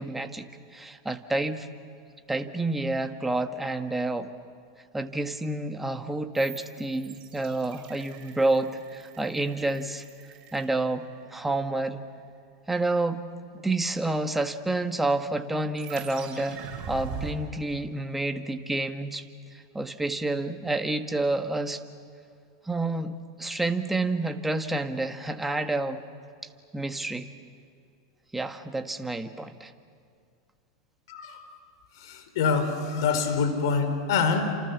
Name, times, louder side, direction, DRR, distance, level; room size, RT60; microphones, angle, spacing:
voice 1, 0.0-1.7 2.3-4.3 4.9-10.0 10.5-12.0 12.7-13.2 13.6-16.6 16.9-19.2 19.7-21.8 22.7-26.0 26.7-27.3 28.3-29.7, right 2 dB, 5° right, 7 dB, 1.6 m, -29 dB
sound 1, 6.3-11.4 15.7-17.3, right 6 dB, 40° right, 7.3 m, -43 dB
voice 2, 31.1-31.4 32.0-34.5, left 5 dB, 70° left, 7 dB, 4.5 m, -26 dB
30.0 x 27.0 x 7.2 m, 2.3 s
hypercardioid pair, 120°, 2 cm